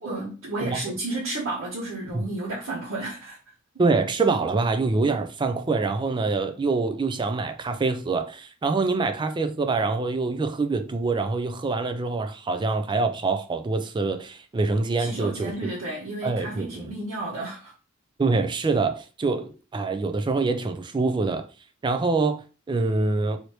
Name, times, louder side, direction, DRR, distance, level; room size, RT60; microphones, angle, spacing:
voice 1, 0.0-3.4 15.0-17.7, right 2 dB, 80° right, 1.1 m, -32 dB
voice 2, 3.8-15.5 16.2-16.9 18.2-21.5 21.8-23.4, right 3 dB, 25° right, 0.3 m, -25 dB
3.0 x 2.7 x 3.1 m
head